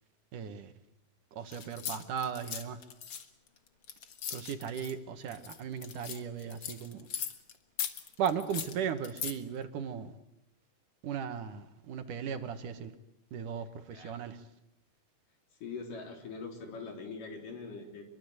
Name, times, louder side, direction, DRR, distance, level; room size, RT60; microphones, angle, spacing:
voice 1, 0.3-0.7 1.3-2.8 4.3-7.1 8.2-10.2 11.0-12.9 13.3-14.4, right 7 dB, 70° right, 3.0 m, -37 dB
sound 1, 1.5-4.9 5.3-7.5 7.8-9.3, left 8 dB, 50° left, 2.0 m, -39 dB
voice 2, 15.6-18.0, left 4 dB, 70° left, 5.3 m, -42 dB
27.5 x 23.0 x 8.1 m
omnidirectional pair, 4.0 m